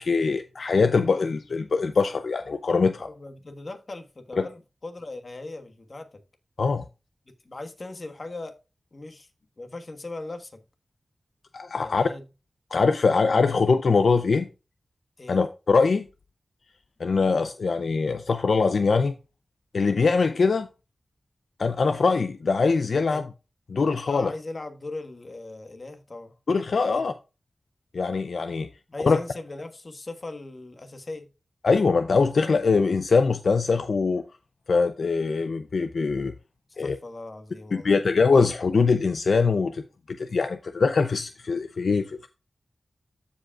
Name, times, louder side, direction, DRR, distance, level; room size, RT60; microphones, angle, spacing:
voice 1, 0.0-3.1 4.4-4.5 6.6-6.9 11.5-12.1 12.7-14.5 15.3-16.1 17.0-19.1 19.7-20.7 21.6-23.3 23.7-24.3 26.5-27.1 27.9-28.7 29.0-29.2 31.6-34.2 34.7-36.3 36.8-37.0 37.7-39.8 40.1-42.3, left 4 dB, 75° left, 0.5 m, -22 dB
voice 2, 3.0-6.2 7.3-8.6 8.9-9.3 9.6-10.6 11.8-12.3 15.2-15.4 23.1-23.2 24.1-26.3 26.8-27.1 28.9-31.3 36.8-38.0, left 2 dB, 50° left, 1.3 m, -39 dB
14.0 x 5.1 x 2.3 m
wide cardioid pair, 65°, 0 cm